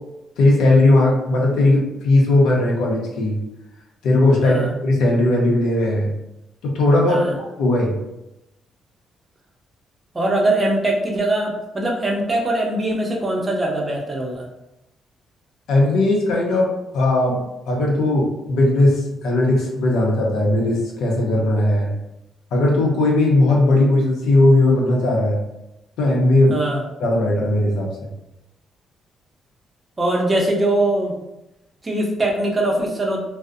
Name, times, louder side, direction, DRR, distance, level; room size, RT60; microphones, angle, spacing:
voice 1, 0.4-3.4 4.0-6.1 6.6-8.0 15.7-21.9 22.5-25.4 26.0-26.5 27.0-28.1, left 2 dB, 85° left, -1 dB, 0.6 m, -18 dB
voice 2, 10.1-14.5 26.5-26.8 30.0-31.1 31.8-33.2, right 1 dB, 25° right, -1 dB, 0.6 m, -21 dB
2.5 x 2.0 x 2.4 m, 0.91 s
cardioid pair, 90°, 0 cm